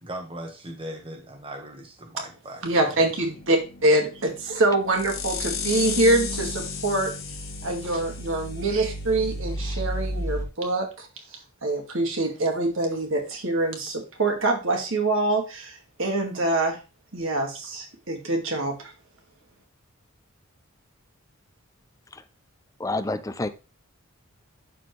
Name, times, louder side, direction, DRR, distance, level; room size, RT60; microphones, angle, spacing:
voice 1, 0.0-2.6, right 1 dB, 25° right, 2 dB, 1.5 m, -38 dB
voice 2, 2.6-7.1 7.6-11.1 11.6-16.8 17.1-18.9, right 2 dB, 65° right, 2 dB, 2.2 m, -25 dB
sound 1, 3.3-10.5, left 2 dB, 65° left, 1.6 m, -33 dB
voice 3, 22.8-23.5, left 2 dB, 15° left, 11 dB, 0.5 m, -29 dB
12.0 x 4.3 x 3.2 m, 0.30 s
head